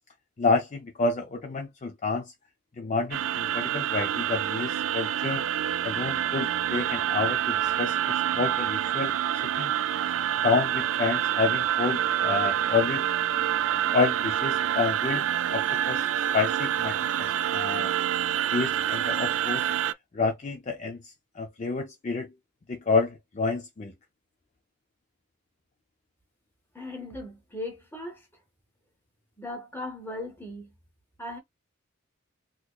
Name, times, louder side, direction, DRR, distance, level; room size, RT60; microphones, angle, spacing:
voice 1, 0.4-2.2 2.8-5.4 5.8-9.7 10.4-13.1 13.9-15.2 15.5-16.1 16.3-17.9 18.5-19.6 20.1-21.0 21.4-22.3 22.7-23.9, left 4 dB, 35° left, 0.4 m, -29 dB
sound 1, 3.1-19.9, right 10 dB, 70° right, 0.3 m, -27 dB
voice 2, 26.7-28.3 29.4-30.7 31.2-31.4, left 1 dB, 10° left, 1.2 m, -38 dB
3.9 x 2.9 x 2.3 m
head